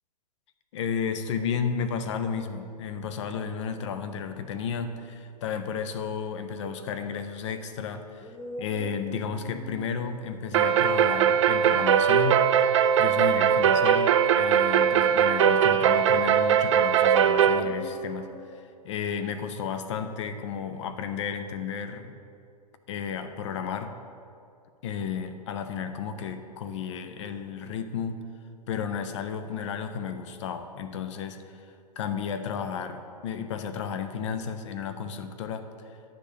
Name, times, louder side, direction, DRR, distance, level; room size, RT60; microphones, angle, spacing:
voice 1, 0.7-8.3 8.6-12.5 13.0-18.3 18.8-22.1 22.9-23.9 24.8-28.2 28.7-31.5 32.0-35.7, left 6 dB, 45° left, 9 dB, 0.7 m, -33 dB
sound 1, 2.5-2.6 3.5-4.0 7.0-7.1 8.2-12.1 14.9-16.2 17.3-18.6, left 1 dB, 15° left, 0.8 m, -44 dB
sound 2, 10.5-17.6, right 8 dB, 45° right, 0.4 m, -21 dB
10.5 x 3.6 x 7.3 m, 2.5 s
figure-of-eight pair, 110°, 21 cm